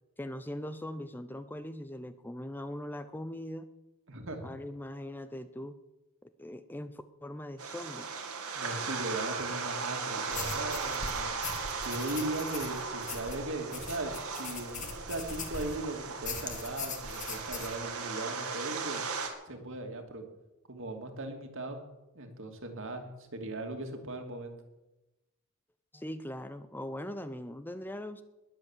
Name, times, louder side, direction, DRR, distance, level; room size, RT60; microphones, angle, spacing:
voice 1, 0.2-3.7 4.4-5.7 6.4-8.1 25.9-28.2, left 1 dB, 10° left, 11 dB, 0.5 m, -40 dB
voice 2, 4.1-4.5 8.5-11.3 11.8-19.0 19.5-20.2 20.7-21.8 22.1-24.5, right 2 dB, 60° right, 4 dB, 2.6 m, -38 dB
sound 1, 7.6-19.3, right 5 dB, 80° right, 2.4 m, -37 dB
sound 2, 10.3-15.8 16.2-17.8, left 5 dB, 35° left, 2.1 m, -41 dB
20.5 x 8.1 x 7.4 m, 1.0 s
head